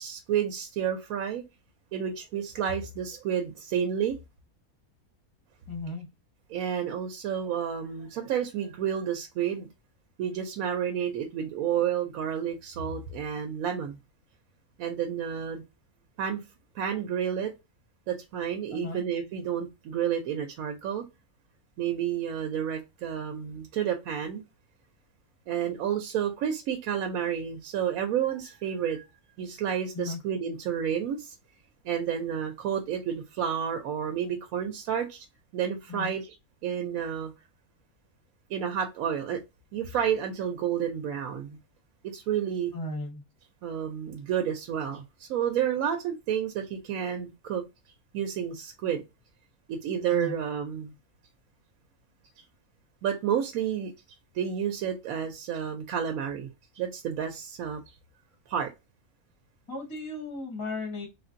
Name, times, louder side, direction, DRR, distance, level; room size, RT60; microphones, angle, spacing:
voice 1, 0.0-1.4 1.9-4.2 6.5-9.7 10.2-14.0 14.8-15.6 16.2-16.4 16.8-17.5 18.1-21.0 21.8-24.4 25.5-29.0 29.4-31.3 31.8-35.2 35.5-36.3 36.6-37.3 38.5-39.4 39.7-41.6 42.0-42.7 43.6-47.6 48.1-49.0 49.7-50.9 53.0-53.9 54.3-56.5 56.8-57.8 58.5-58.7, right 8 dB, 70° right, 1.0 m, -30 dB
voice 2, 5.7-6.1 18.7-19.0 29.9-30.2 35.9-36.2 42.7-43.2 50.1-50.4 59.7-61.1, left 3 dB, 20° left, 0.8 m, -35 dB
3.2 x 2.5 x 2.5 m
omnidirectional pair, 1.6 m